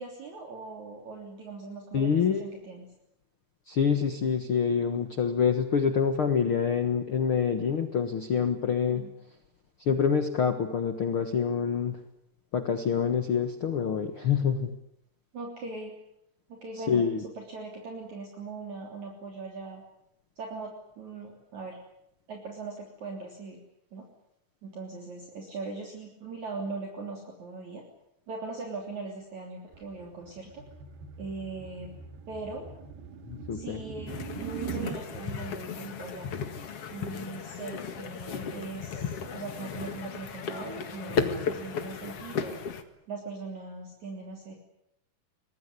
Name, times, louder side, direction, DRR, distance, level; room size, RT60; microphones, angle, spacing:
voice 1, 0.0-2.9 8.9-9.1 15.3-15.9 16.5-17.0 17.4-19.8 20.4-21.8 22.3-23.6 23.9-24.0 24.6-27.8 28.3-30.6 31.2-31.9 32.3-32.7 33.5-36.3 36.9-42.6 43.1-44.5, right 3 dB, 45° right, 1 dB, 4.4 m, -40 dB
voice 2, 1.9-2.5 3.7-9.1 9.8-12.0 12.5-14.7 16.7-17.2 33.3-33.8, left 6 dB, 75° left, 8 dB, 1.2 m, -26 dB
sound 1, 29.7-35.0, right 6 dB, 70° right, 3.7 m, -41 dB
sound 2, 34.1-42.8, left 6 dB, 50° left, 2.0 m, -35 dB
24.0 x 20.5 x 9.8 m, 0.79 s
omnidirectional pair, 4.8 m